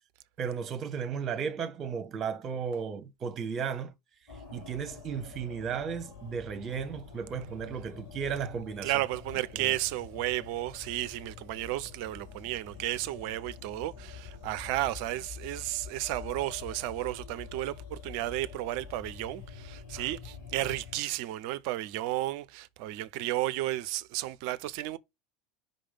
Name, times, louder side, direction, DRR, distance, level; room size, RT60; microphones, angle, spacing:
voice 1, 0.4-3.9 4.5-8.9 9.5-9.7 19.9-20.1, right 6 dB, 40° right, 1.2 m, -35 dB
sound 1, 4.3-21.0, left 6 dB, 55° left, 4.3 m, -47 dB
voice 2, 8.8-25.0, right 15 dB, 60° right, 0.6 m, -33 dB
5.5 x 3.4 x 5.4 m
figure-of-eight pair, 70°, 0 cm